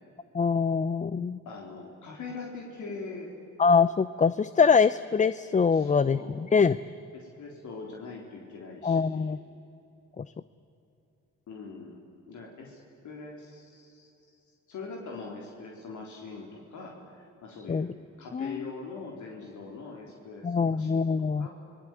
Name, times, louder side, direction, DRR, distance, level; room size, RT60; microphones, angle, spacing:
voice 1, 0.3-1.4 3.6-6.8 8.8-9.4 10.2-10.3 17.7-17.9 18.3-18.7 20.4-21.5, left 5 dB, 25° left, 15 dB, 0.6 m, -24 dB
voice 2, 1.5-3.3 5.7-6.4 7.1-9.3 11.5-12.0 12.3-12.8 13.0-14.1 14.7-21.1 21.4-21.5, left 4 dB, 75° left, 0 dB, 4.1 m, -42 dB
27.0 x 20.5 x 9.3 m, 2.8 s
cardioid pair, 90°, 30 cm